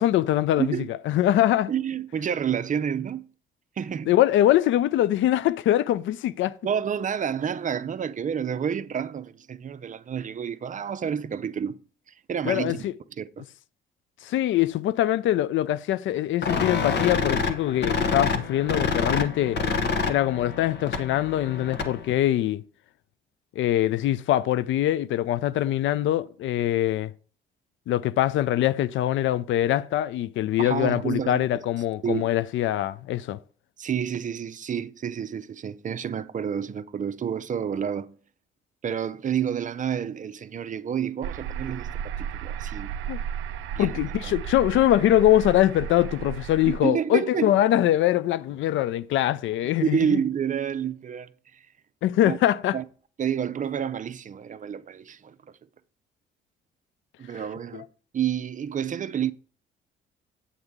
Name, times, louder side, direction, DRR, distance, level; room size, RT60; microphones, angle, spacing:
voice 1, 0.0-0.7 1.1-1.7 4.1-6.5 12.5-12.9 14.2-19.6 20.1-22.6 23.6-27.1 27.9-33.4 43.1-43.2 43.8-50.2 52.0-52.8 57.7-57.8, left 13 dB, 75° left, 0.5 m, -23 dB
voice 2, 0.6-0.9 1.7-3.3 3.8-4.1 6.6-11.8 12.3-12.9 13.2-13.4 30.6-31.4 32.0-32.3 33.8-38.2 38.8-42.9 43.8-44.0 44.2-44.3 46.6-47.5 49.8-51.3 52.2-52.4 52.7-52.8 53.2-55.6 57.2-57.9 58.1-59.3, right 8 dB, 40° right, 0.6 m, -29 dB
sound 1, 16.4-22.1, left 5 dB, 60° left, 1.2 m, -27 dB
sound 2, 41.2-46.8, right 9 dB, 85° right, 0.5 m, -34 dB
8.1 x 7.9 x 3.6 m
cardioid pair, 90°, 20 cm